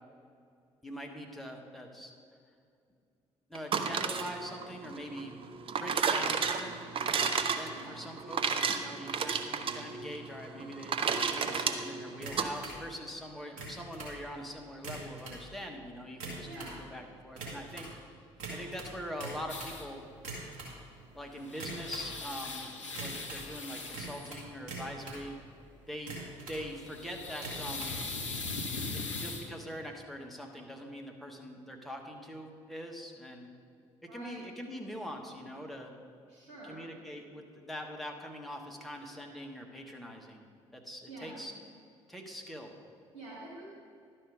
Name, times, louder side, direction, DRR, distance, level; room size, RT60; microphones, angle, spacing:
voice 1, 0.8-2.1 3.5-5.4 5.8-6.8 7.5-17.9 18.5-20.1 21.1-22.7 23.0-25.4 25.9-26.1 26.5-28.0 28.9-33.5 34.0-35.9 36.6-40.4 40.7-41.5 42.1-42.7, equal, ahead, 1 dB, 1.2 m, -43 dB
sound 1, 3.6-12.5, right 6 dB, 35° right, 0.6 m, -32 dB
voice 2, 7.7-8.1 16.4-16.8 34.1-34.4 36.3-36.8 41.1-41.4 43.1-43.6, right 1 dB, 80° right, -8 dB, 1.9 m, -47 dB
sound 2, 12.2-12.8 13.4-14.2 14.7-15.4 16.0-16.8 17.3-17.9 18.4-19.8 20.1-20.7 21.5-22.1 22.9-23.5 23.9-25.2 25.9-26.6 27.3-28.0, right 3 dB, 60° right, 2.0 m, -43 dB
sound 3, 19.5-19.9 21.1-24.4 26.7-29.5, left 3 dB, 80° left, 0.5 m, -40 dB
11.5 x 4.4 x 5.0 m, 2.4 s
figure-of-eight pair, 50°, 15 cm